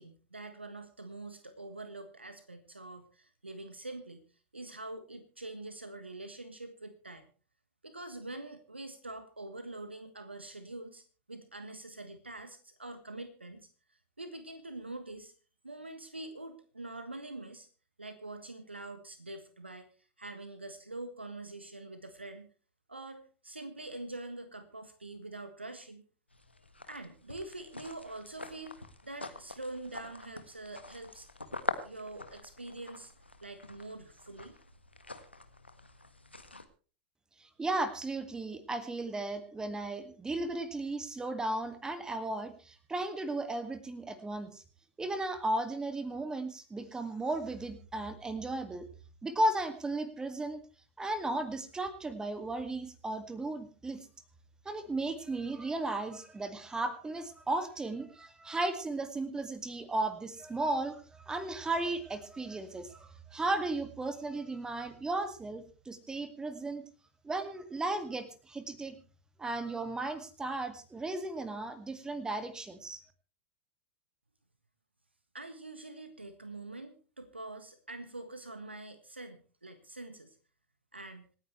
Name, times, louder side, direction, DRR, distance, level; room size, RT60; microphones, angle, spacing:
voice 1, 0.0-4.3 4.5-7.3 7.8-11.0 11.3-15.3 15.6-17.7 18.0-19.9 20.2-22.5 22.9-26.0 26.8-31.3 31.8-33.1 33.4-34.6 75.3-80.4 80.9-81.2, right 2 dB, 85° right, 9 dB, 1.5 m, -45 dB
sound 1, 26.3-36.6, left 2 dB, 85° left, 1.5 m, -44 dB
voice 2, 37.4-44.6 45.0-48.9 49.2-50.6 51.0-54.0 54.7-66.8 67.2-69.0 69.4-73.0, right 2 dB, 10° right, 10 dB, 2.2 m, -35 dB
26.5 x 9.6 x 3.3 m, 0.38 s
figure-of-eight pair, 90°, 6 cm